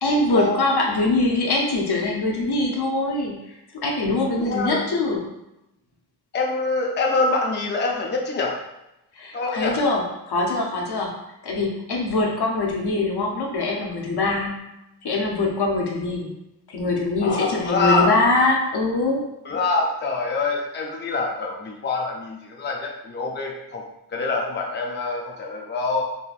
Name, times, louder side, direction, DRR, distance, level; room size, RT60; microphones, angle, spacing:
voice 1, 0.0-3.6 3.8-5.3 9.1-11.1 11.4-14.6 15.0-16.3 16.7-19.2, left 2 dB, 70° left, -1 dB, 0.8 m, -23 dB
voice 2, 4.4-4.8 6.3-8.6 9.3-9.8 17.2-18.1 19.5-23.8 24.1-26.0, left 3 dB, 25° left, 0 dB, 0.5 m, -25 dB
3.7 x 2.6 x 2.4 m, 0.89 s
wide cardioid pair, 80°, 40 cm